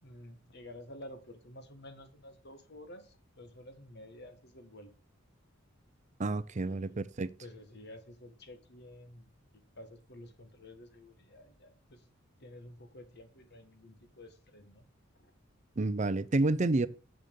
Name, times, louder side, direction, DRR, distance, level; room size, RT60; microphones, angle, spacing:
voice 1, 0.0-4.9 6.7-7.0 7.4-9.4 9.7-12.0 12.4-14.8 15.2-15.3, left 1 dB, 55° left, 1.8 m, -51 dB
voice 2, 6.2-7.3 15.8-16.9, right 2 dB, 35° right, 0.6 m, -29 dB
7.9 x 6.6 x 7.0 m
head